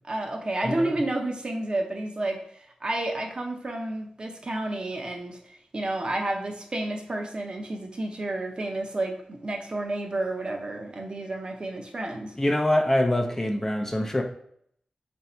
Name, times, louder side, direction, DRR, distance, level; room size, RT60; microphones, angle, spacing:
voice 1, 0.0-2.4 2.8-5.4 5.7-12.3, right 2 dB, 40° right, 2 dB, 0.7 m, -30 dB
voice 2, 0.6-1.0 12.4-14.2, left 1 dB, 20° left, 3 dB, 0.5 m, -24 dB
3.3 x 2.7 x 4.2 m, 0.67 s
wide cardioid pair, 85°, 2 cm